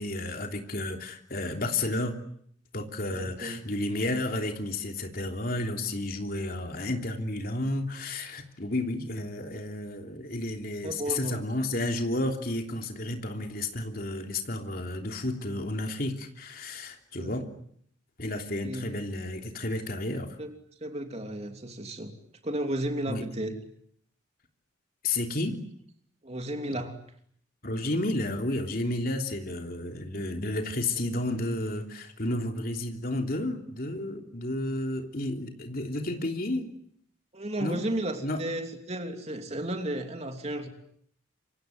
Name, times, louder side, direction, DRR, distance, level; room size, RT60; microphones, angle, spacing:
voice 1, 0.0-2.1 2.7-17.5 18.2-20.4 23.1-23.2 25.0-25.6 27.6-36.7 37.6-37.8 38.2-38.4, left 1 dB, 50° left, 4 dB, 3.3 m, -32 dB
voice 2, 3.1-3.6 10.8-11.4 17.1-17.5 18.6-18.9 20.4-20.5 20.8-22.1 22.4-23.6 26.2-27.0 37.3-40.7, right 1 dB, 35° right, 5 dB, 3.0 m, -33 dB
28.0 x 25.5 x 7.9 m, 0.67 s
head